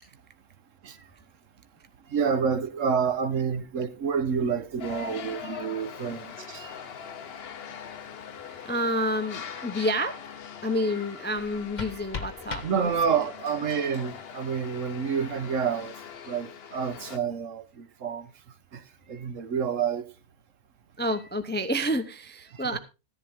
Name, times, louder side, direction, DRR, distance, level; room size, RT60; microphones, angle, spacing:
voice 1, 2.1-6.7 12.6-16.0 16.3-18.3 18.7-18.8 19.1-20.1 22.6-22.8, right 6 dB, 65° right, 1.3 m, -28 dB
sound 1, 4.8-17.2, left 7 dB, 50° left, 0.9 m, -42 dB
voice 2, 6.5-6.9 8.4-10.2 10.6-13.2 19.1-19.3 21.0-22.8, equal, 15° left, 0.4 m, -30 dB
sound 2, 11.3-13.4, left 4 dB, 35° left, 1.1 m, -39 dB
15.0 x 10.5 x 3.5 m
omnidirectional pair, 1.4 m